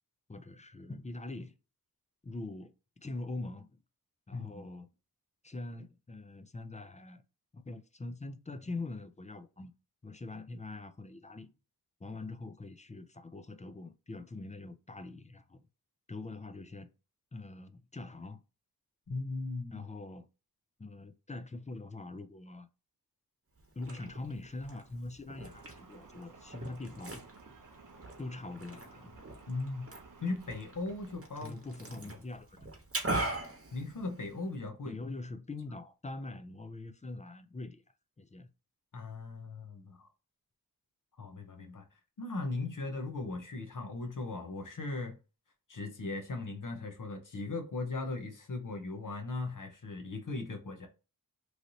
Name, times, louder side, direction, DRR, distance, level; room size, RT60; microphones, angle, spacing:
voice 1, 0.3-1.5 2.2-2.7 3.0-3.8 4.3-4.9 5.4-7.2 7.5-9.7 10.0-11.5 12.0-15.6 16.1-16.9 17.3-18.4 19.7-20.3 20.8-22.7 23.8-27.2 28.2-29.2 31.3-32.7 34.8-37.8 38.2-38.5, left 2 dB, 20° left, 0.3 m, -43 dB
voice 2, 4.3-4.7 19.1-19.9 29.5-29.9 30.2-31.5 33.7-35.0 38.9-40.1 41.2-41.8 42.2-45.2 45.7-50.9, left 3 dB, 55° left, 0.7 m, -38 dB
Liquid, 23.6-34.6, right 2 dB, 40° right, 1.0 m, -42 dB
sound 1, 25.5-32.2, right 4 dB, 60° right, 0.6 m, -57 dB
3.2 x 2.6 x 2.7 m
wide cardioid pair, 60°, 37 cm